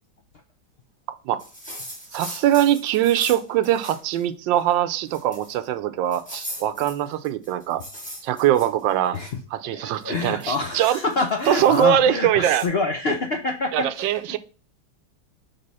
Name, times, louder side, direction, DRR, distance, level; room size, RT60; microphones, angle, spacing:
sound 1, 1.4-4.2 4.6-4.7 5.1-5.7 6.1-9.3 9.9-11.9 12.6-12.7, equal, 5° left, 1.9 m, -39 dB
voice 1, 2.1-7.8 8.2-9.2 9.5-11.0 11.5-12.6 13.7-14.4, right 11 dB, 80° right, 1.3 m, -22 dB
voice 2, 9.6-14.4, left 3 dB, 70° left, 0.5 m, -27 dB
6.7 x 3.7 x 4.0 m
omnidirectional pair, 2.1 m